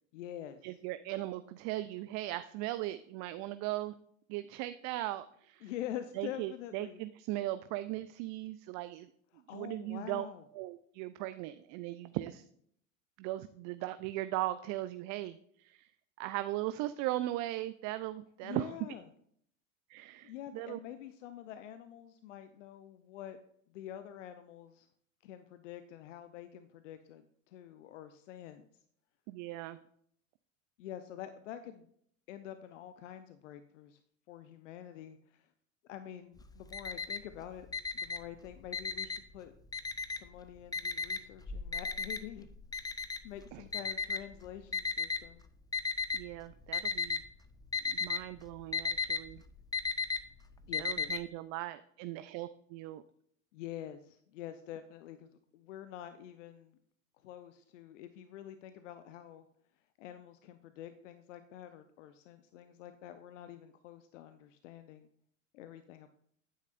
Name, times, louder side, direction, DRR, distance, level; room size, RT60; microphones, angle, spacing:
voice 1, 0.1-0.8 5.6-7.0 9.3-10.4 18.4-19.0 20.2-23.4 23.7-24.9 25.2-28.6 30.8-31.9 32.3-34.0 34.3-35.5 35.8-37.7 37.9-39.5 40.1-42.5 42.8-43.0 43.2-45.4 50.7-51.2 53.5-56.8 57.2-59.5 60.0-65.1 65.5-66.1, left 11 dB, 70° left, 10 dB, 0.8 m, -47 dB
voice 2, 0.6-3.9 4.3-5.7 6.2-9.1 9.5-10.3 10.5-12.4 13.2-15.9 16.2-18.7 19.9-20.8 29.3-29.8 43.5-43.6 46.1-47.2 47.8-49.4 50.8-53.0, right 16 dB, 45° right, 12 dB, 0.5 m, -38 dB
Alarm, 36.4-37.4 37.7-39.3 39.7-40.4 40.7-45.2 45.7-46.3 46.6-47.3 47.5-51.2, left 4 dB, 10° left, 0.6 m, -35 dB
10.5 x 9.6 x 2.6 m, 0.66 s
hypercardioid pair, 80°, 39 cm